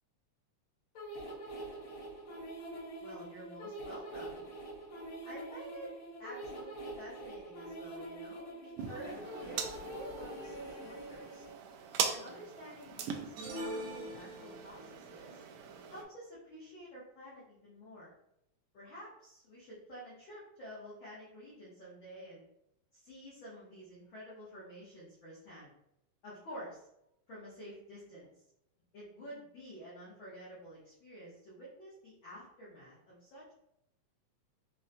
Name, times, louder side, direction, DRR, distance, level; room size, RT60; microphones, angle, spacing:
sound 1, 0.9-11.5, right 1 dB, 60° left, 1.4 m, -45 dB
voice 1, 3.0-4.4 5.2-5.9 6.2-11.4 12.1-15.4 15.9-18.1 18.7-22.5 22.9-25.7 26.2-26.9 27.3-28.4 28.9-33.5, equal, 90° left, -9 dB, 1.0 m, -50 dB
sound 2, 8.8-16.0, right 7 dB, 90° right, 1.5 m, -41 dB
sound 3, 13.4-14.9, equal, 70° right, 2.3 m, -42 dB
5.3 x 2.1 x 2.6 m, 0.81 s
omnidirectional pair, 3.6 m